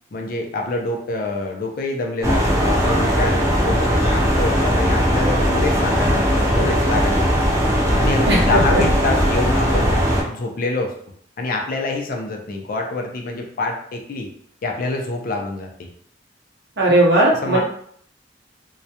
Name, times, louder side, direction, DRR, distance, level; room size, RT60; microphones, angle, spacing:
voice 1, 0.1-7.6 8.0-10.9 11.4-14.3 14.6-15.9 17.4-17.6, left 2 dB, 50° left, 2 dB, 0.4 m, -26 dB
sound 1, 2.2-10.2, equal, 15° right, 0.5 m, -18 dB
voice 2, 8.3-8.8 16.8-17.6, right 1 dB, 65° right, -2 dB, 0.7 m, -17 dB
2.3 x 2.1 x 2.7 m, 0.64 s
head